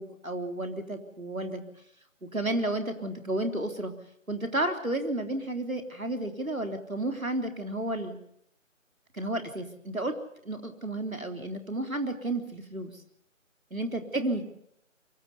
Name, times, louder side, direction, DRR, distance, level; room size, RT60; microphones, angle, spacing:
voice 1, 0.0-1.6 2.2-3.9 4.3-8.2 9.1-10.2 10.5-12.9 13.7-14.4, right 1 dB, 90° right, 5 dB, 3.6 m, -32 dB
23.5 x 21.5 x 6.9 m, 0.73 s
figure-of-eight pair, 165°, 40 cm